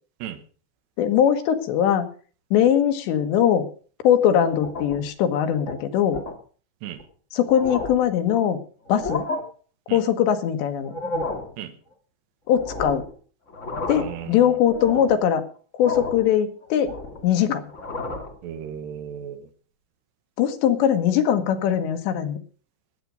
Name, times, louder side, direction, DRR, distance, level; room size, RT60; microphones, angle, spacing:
voice 1, 1.0-2.1 2.5-3.7 4.0-6.2 7.3-8.6 8.9-9.3 9.9-10.9 12.5-13.0 13.9-15.4 15.7-16.9 17.2-17.7 20.4-22.4, left 9 dB, 90° left, 7 dB, 3.6 m, -21 dB
sound 1, 4.5-5.1 5.5-5.7 6.1-6.4 7.0-7.1 7.4-8.1 8.8-9.4 10.8-11.5 12.6-13.1 13.5-14.2 14.6-15.2 15.8-16.3 16.6-17.3 17.7-18.3, left 2 dB, 30° left, 1.5 m, -32 dB
voice 2, 14.0-14.6 18.4-19.5, right 9 dB, 80° right, 8 dB, 3.4 m, -35 dB
18.5 x 8.4 x 5.2 m, 0.41 s
omnidirectional pair, 4.9 m